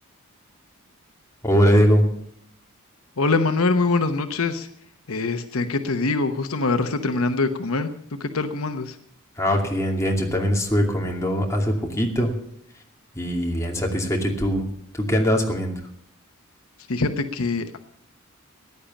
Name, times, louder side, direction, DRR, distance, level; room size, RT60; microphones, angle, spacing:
voice 1, 1.4-2.1 9.4-12.3 13.2-14.7 14.9-15.8, equal, 15° left, 0 dB, 2.6 m, -21 dB
voice 2, 3.2-4.7 5.1-7.9 8.2-9.0 16.9-17.8, left 3 dB, 75° left, 8 dB, 1.0 m, -23 dB
15.0 x 10.5 x 7.1 m, 0.71 s
head